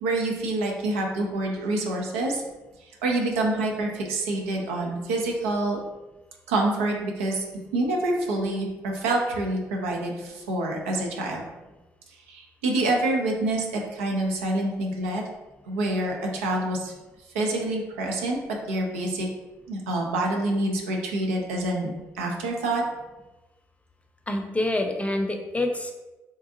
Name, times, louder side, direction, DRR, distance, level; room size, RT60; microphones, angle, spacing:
voice 1, 0.0-2.4 3.0-5.8 6.5-7.4 7.7-11.4 12.3-15.2 15.6-16.9 17.3-19.3 19.7-22.8, right 2 dB, 90° right, 0 dB, 0.5 m, -27 dB
voice 2, 24.3-25.9, left 1 dB, 20° left, 3 dB, 0.6 m, -26 dB
3.8 x 2.5 x 2.6 m, 1.1 s
hypercardioid pair, 50°, 7 cm